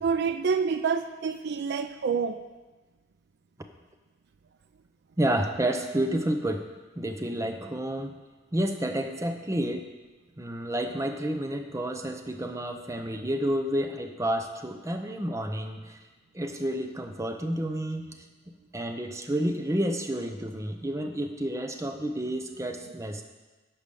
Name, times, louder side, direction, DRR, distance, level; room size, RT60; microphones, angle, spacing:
voice 1, 0.0-2.4, right 5 dB, 55° right, 10 dB, 0.4 m, -27 dB
voice 2, 5.2-6.6 7.0-8.2 8.5-9.9 10.4-16.0 16.3-18.2 18.7-23.2, right 1 dB, 15° right, 5 dB, 0.7 m, -30 dB
11.5 x 5.0 x 6.9 m, 1.2 s
head